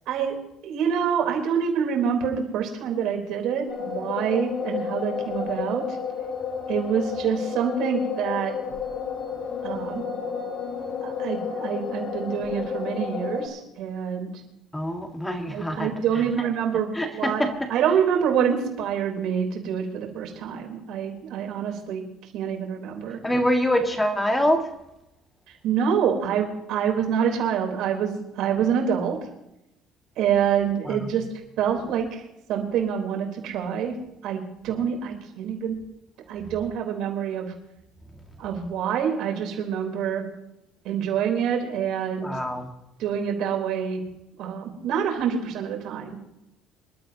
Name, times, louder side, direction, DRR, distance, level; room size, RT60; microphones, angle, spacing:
voice 1, 0.1-0.4 0.6-6.0 6.7-8.5 9.6-10.1 11.0-14.3 15.5-17.4 17.7-22.0 22.3-23.2 25.6-29.2 30.2-31.2 31.6-32.2 32.5-33.9 34.2-35.8 36.3-37.5 38.4-40.2 40.8-42.3 43.0-44.0 44.4-46.3, right 8 dB, 60° right, 2 dB, 3.9 m, -26 dB
sound 1, 3.7-13.5, left 6 dB, 50° left, 3.6 m, -31 dB
voice 2, 14.7-15.9 17.0-17.5 23.2-24.6 30.9-31.0 42.2-42.7, equal, 5° left, 3 dB, 1.9 m, -24 dB
26.5 x 12.5 x 2.9 m, 0.88 s
cardioid pair, 170°, 0 cm